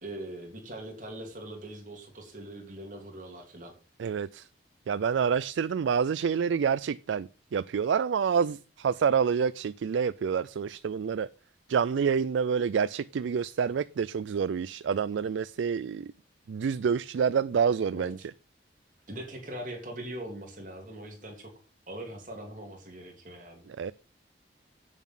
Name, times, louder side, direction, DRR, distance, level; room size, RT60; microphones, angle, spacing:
voice 1, 0.0-3.7 17.9-18.3 19.1-21.5 21.9-23.7, right 1 dB, 45° right, 3.0 m, -41 dB
voice 2, 4.0-4.5 4.9-11.3 11.7-16.1 16.5-18.3 23.7-23.9, right 6 dB, 90° right, 0.4 m, -28 dB
8.4 x 7.1 x 5.6 m
head